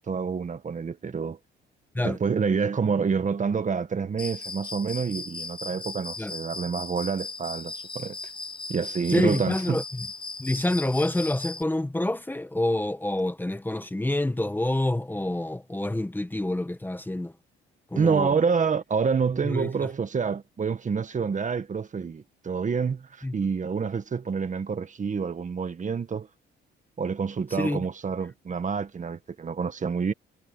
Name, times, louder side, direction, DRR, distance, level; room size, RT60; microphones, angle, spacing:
voice 1, 0.0-1.4 2.0-8.2 8.7-9.8 18.0-26.3 27.0-30.1, right 5 dB, 40° right, 1.7 m, -27 dB
Cricket, 4.2-11.6, left 3 dB, 25° left, 5.4 m, -37 dB
voice 2, 9.1-10.1 10.4-17.3 17.9-18.3 19.4-19.7 23.2-23.3 27.5-27.8, left 1 dB, 10° left, 1.4 m, -27 dB
cardioid pair, 90°, 20 cm